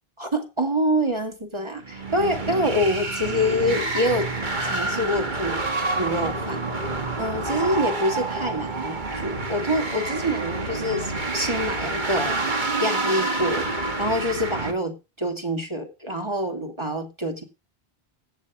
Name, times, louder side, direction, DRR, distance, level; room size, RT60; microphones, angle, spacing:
voice 1, 0.2-4.3 4.6-5.6 5.9-6.6 7.2-13.7 14.0-17.4, equal, 25° right, 5 dB, 2.3 m, -26 dB
sound 1, 1.8-14.7, right 2 dB, 50° right, 2.0 m, -28 dB
15.5 x 7.5 x 4.9 m, 0.29 s
omnidirectional pair, 1.1 m